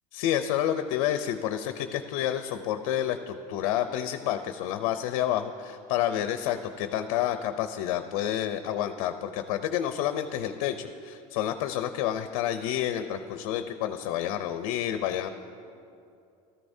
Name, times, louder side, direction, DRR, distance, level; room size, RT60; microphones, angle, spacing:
voice 1, 0.1-15.3, left 11 dB, 75° left, 9 dB, 0.5 m, -29 dB
14.0 x 13.5 x 2.7 m, 2.6 s
supercardioid pair, 135°, 18 cm